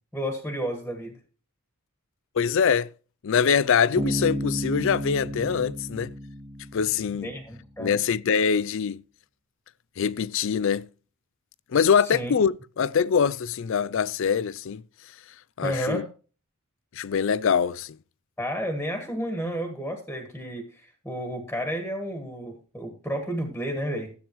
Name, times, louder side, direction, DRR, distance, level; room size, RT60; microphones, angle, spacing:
voice 1, 0.1-1.2 7.2-8.0 12.1-12.3 15.6-16.1 18.4-24.1, equal, 5° left, 1.6 m, -31 dB
voice 2, 2.4-2.9 3.2-6.1 6.7-7.3 7.8-9.0 10.0-10.9 11.7-14.8 15.6-16.1 16.9-18.0, left 6 dB, 60° left, 0.4 m, -23 dB
Bass guitar, 4.0-7.6, equal, 20° right, 0.9 m, -32 dB
13.5 x 8.7 x 3.0 m
head